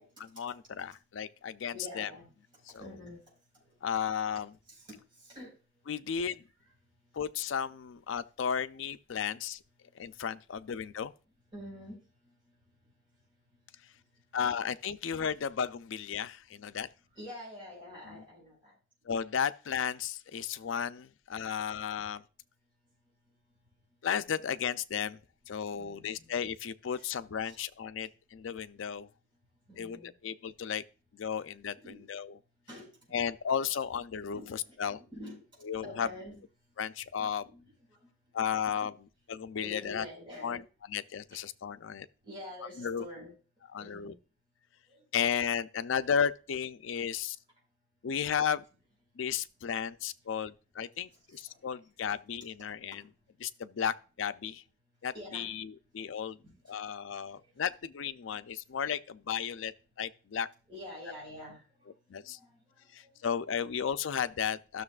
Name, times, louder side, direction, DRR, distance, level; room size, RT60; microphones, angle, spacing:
voice 1, 0.3-2.1 2.7-2.9 3.8-4.5 5.9-6.4 7.1-9.6 9.9-11.1 14.3-16.9 18.1-18.2 19.1-22.2 24.0-25.2 25.5-29.1 29.8-30.8 31.1-32.4 33.1-35.0 35.6-36.1 36.8-37.5 38.3-40.1 40.4-40.6 40.9-42.1 42.8-43.1 43.7-44.1 45.1-47.4 48.0-48.6 49.2-53.0 53.4-54.6 55.0-56.4 56.7-60.5 62.1-62.4 62.9-64.8, left 7 dB, 75° left, 0.4 m, -34 dB
voice 2, 1.7-2.3 2.7-3.2 3.7-3.8 4.7-5.0 5.2-5.5 10.1-10.2 11.5-12.0 12.2-12.3 17.1-18.7 21.6-21.8 25.7-26.3 26.9-27.1 27.4-27.6 29.7-30.1 31.8-32.1 32.7-33.2 34.3-35.4 35.8-36.4 37.2-38.0 38.4-38.6 38.8-38.9 39.6-40.6 41.3-41.4 42.2-43.3 43.8-44.2 44.9-45.0 51.3-51.6 52.0-52.1 55.1-55.5 56.4-56.5 57.5-57.6 60.7-61.6 62.2-63.1, left 1 dB, 25° right, 4.6 m, -47 dB
13.0 x 6.5 x 2.4 m
head